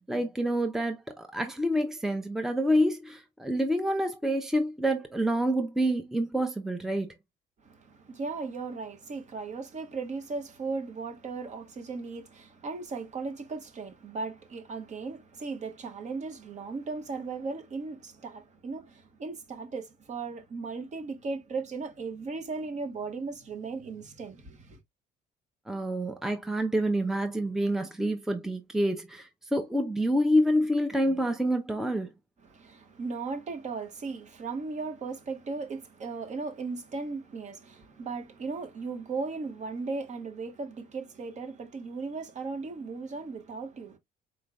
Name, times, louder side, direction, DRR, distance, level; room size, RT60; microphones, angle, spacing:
voice 1, 0.0-7.1 25.7-32.1, equal, ahead, 0.6 m, -27 dB
voice 2, 7.6-24.8 32.4-44.0, right 4 dB, 45° right, 1.4 m, -37 dB
4.4 x 3.7 x 2.3 m
cardioid pair, 110°, 17 cm